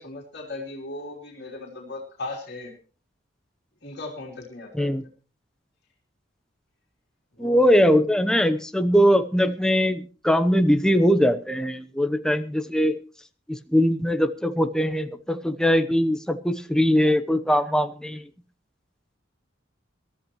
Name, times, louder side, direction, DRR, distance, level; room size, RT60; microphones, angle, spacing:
voice 1, 0.0-2.7 3.8-5.0 7.3-7.9, left 2 dB, 60° left, -1 dB, 3.5 m, -37 dB
voice 2, 7.4-13.0 13.5-18.2, equal, 5° left, 8 dB, 0.9 m, -21 dB
22.0 x 14.0 x 3.1 m, 0.38 s
head